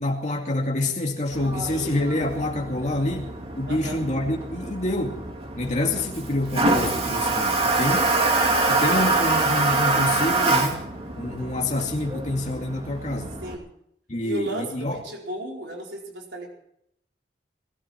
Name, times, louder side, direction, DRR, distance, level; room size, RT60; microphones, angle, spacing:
voice 1, 0.0-5.2 5.6-8.0 8.7-10.9 11.2-13.4 14.1-15.0, left 1 dB, 40° left, 1 dB, 2.3 m, -27 dB
Toilet flush, 1.3-13.6, right 2 dB, 35° right, 2.7 m, -25 dB
voice 2, 3.6-4.0 7.4-7.9 13.4-13.7 14.2-16.5, right 1 dB, 85° right, -1 dB, 4.7 m, -34 dB
21.5 x 15.0 x 4.5 m, 0.73 s
head